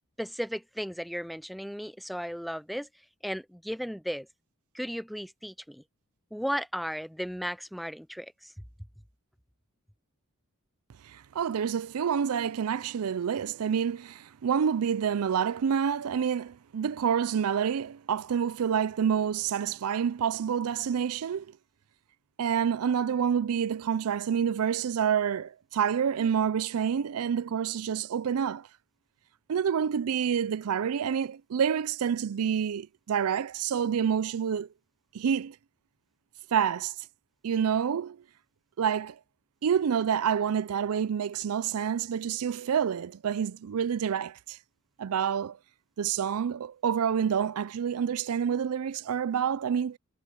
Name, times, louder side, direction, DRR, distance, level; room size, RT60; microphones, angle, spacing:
voice 1, 0.2-2.9 3.2-4.3 4.7-5.8 6.3-8.5, equal, ahead, 0.4 m, -35 dB
voice 2, 11.0-21.6 22.4-28.7 29.5-34.7 35.1-35.6 36.5-36.9 37.4-38.2 38.8-39.2 39.6-44.6 45.0-45.6 46.0-50.0, right 7 dB, 70° right, 0.4 m, -28 dB
head